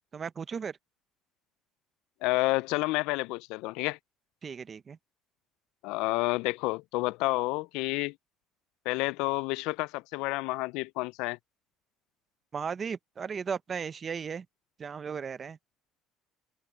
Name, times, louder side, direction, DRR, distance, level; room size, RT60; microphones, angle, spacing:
voice 1, 0.1-0.8 4.4-5.0 12.5-14.5 14.8-15.6, right 6 dB, 30° right, 0.7 m, -36 dB
voice 2, 2.2-4.0 5.8-8.1 8.9-11.4, left 22 dB, 80° left, 0.3 m, -30 dB
cardioid pair, 140°, 0 cm